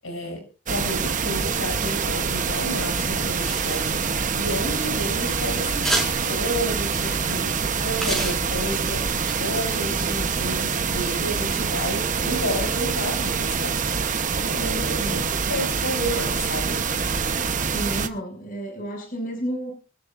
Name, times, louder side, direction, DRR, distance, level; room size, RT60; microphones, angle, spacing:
voice 1, 0.0-9.1 9.4-13.8 14.4-15.2 15.5-16.8, equal, 85° left, 3 dB, 7.3 m, -31 dB
sound 1, 0.7-18.1, right 5 dB, 40° right, 0.9 m, -25 dB
sound 2, 3.4-4.3 4.9-5.1 5.8-6.4 7.1-7.3 8.0-8.9 9.2-9.3, right 1 dB, ahead, 5.3 m, -29 dB
voice 2, 14.6-15.3 17.7-19.7, right 1 dB, 45° left, 2 dB, 6.2 m, -31 dB
23.5 x 14.0 x 2.5 m, 0.34 s
head